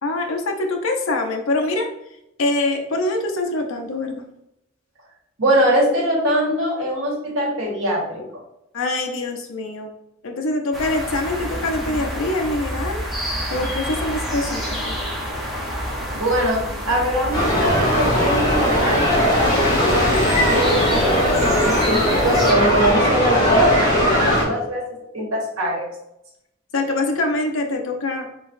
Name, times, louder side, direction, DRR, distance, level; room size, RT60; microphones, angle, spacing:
voice 1, 0.0-1.9 2.4-4.2 8.7-9.9 10.2-13.0 13.5-15.0 26.7-28.3, left 2 dB, 80° left, 3 dB, 0.6 m, -24 dB
voice 2, 5.4-8.2 16.1-20.1 20.5-24.8 25.1-25.9, equal, 85° right, -3 dB, 1.5 m, -22 dB
sound 1, 10.7-22.5, equal, ahead, 0.8 m, -29 dB
sound 2, 17.3-24.4, equal, 20° left, 1.3 m, -18 dB
3.9 x 3.9 x 2.6 m, 0.84 s
head